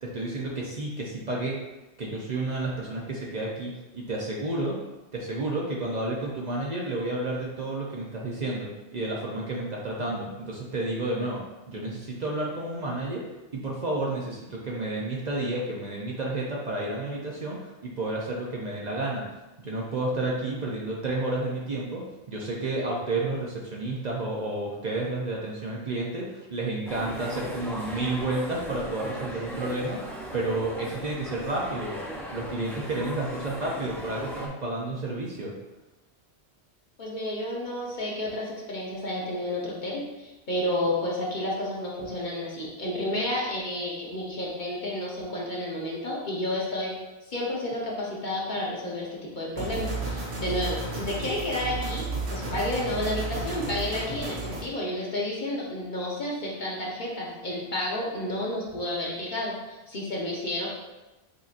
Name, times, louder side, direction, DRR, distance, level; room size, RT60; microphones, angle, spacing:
voice 1, 0.0-1.6 2.0-4.8 5.1-13.3 13.5-19.2 19.6-30.0 30.3-32.0 32.3-35.5, right 2 dB, 45° right, -3 dB, 0.7 m, -31 dB
sound 1, 26.9-34.5, equal, 5° left, 0.5 m, -38 dB
voice 2, 37.0-46.9 47.3-52.0 52.3-60.7, left 1 dB, 50° left, -4 dB, 1.0 m, -31 dB
sound 2, 49.6-54.6, right 3 dB, 85° right, 1.2 m, -33 dB
6.5 x 2.7 x 2.5 m, 1.1 s
omnidirectional pair, 1.1 m